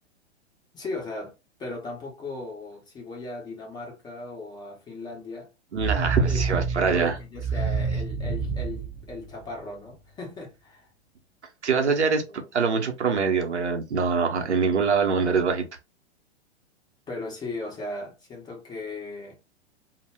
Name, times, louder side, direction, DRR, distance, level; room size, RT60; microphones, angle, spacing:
voice 1, 0.7-1.3 1.6-5.5 6.3-6.6 6.9-10.9 11.8-12.0 12.3-12.5 17.1-19.4, left 2 dB, 10° left, 0.5 m, -37 dB
voice 2, 5.7-7.2 11.6-12.2 12.5-15.7, right 5 dB, 85° right, 0.7 m, -24 dB
sound 1, 5.8-9.8, right 5 dB, 25° right, 0.7 m, -28 dB
2.1 x 2.0 x 3.3 m
figure-of-eight pair, 105°, 34 cm